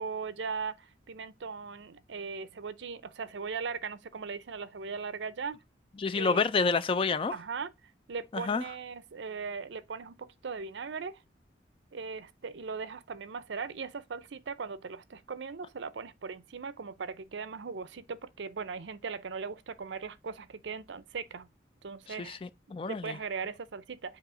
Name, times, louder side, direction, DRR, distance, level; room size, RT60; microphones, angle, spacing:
voice 1, 0.0-5.6 6.1-6.4 7.3-7.7 8.1-11.2 11.9-21.5 21.8-22.4 22.9-24.2, right 5 dB, 65° right, 0.5 m, -39 dB
voice 2, 6.0-7.3 8.3-8.6 22.1-23.2, left 4 dB, 30° left, 0.3 m, -29 dB
7.4 x 2.9 x 5.0 m
head